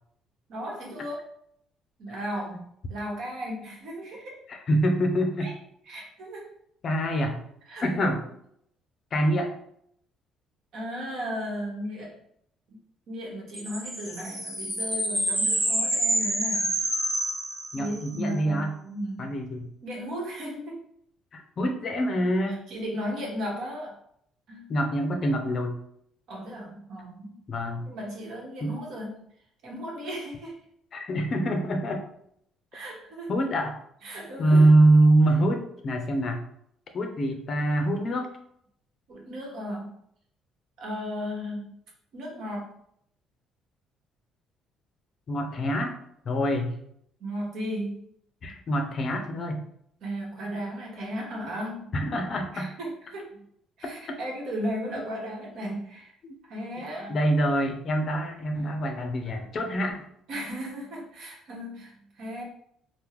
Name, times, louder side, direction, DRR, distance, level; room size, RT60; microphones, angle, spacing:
voice 1, 0.5-1.2 2.0-4.4 5.4-5.5 5.9-6.5 7.7-8.2 10.7-12.1 12.7-12.8 13.1-16.7 17.7-19.3 19.8-20.8 22.5-24.0 24.5-24.7 26.3-27.4 27.9-29.2 29.6-30.6 32.7-33.3 34.0-34.7 39.1-39.9 40.8-41.7 42.1-42.7 47.2-48.0 50.0-51.9 52.5-53.4 53.8-56.1 56.5-57.2 58.5-58.7 60.3-62.4, equal, 65° right, -2 dB, 1.1 m, -35 dB
voice 2, 4.5-5.5 6.8-7.4 7.8-8.2 9.1-9.5 17.7-18.7 19.2-19.7 21.3-22.6 24.7-25.8 27.5-27.9 28.6-28.7 30.9-32.1 33.3-33.7 34.4-36.4 36.9-38.3 45.3-45.9 46.3-46.7 48.4-49.6 51.9-52.7 54.1-54.2 56.2-56.4 57.1-60.0, right 1 dB, 45° left, 4 dB, 0.5 m, -24 dB
sound 1, 13.5-18.2, right 1 dB, 30° right, 1.1 m, -28 dB
3.5 x 2.1 x 2.9 m, 0.71 s
cardioid pair, 120°, 0 cm